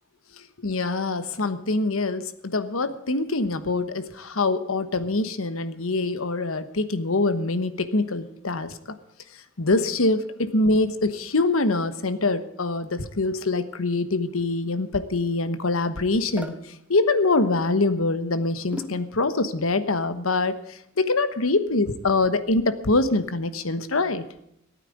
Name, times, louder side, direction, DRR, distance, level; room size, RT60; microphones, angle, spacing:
voice 1, 0.6-8.7 9.6-16.5 16.9-24.2, left 2 dB, 70° left, 11 dB, 1.2 m, -24 dB
sound 1, 16.4-16.6 18.7-19.1, equal, 5° right, 1.4 m, -35 dB
14.5 x 9.2 x 8.3 m, 0.77 s
head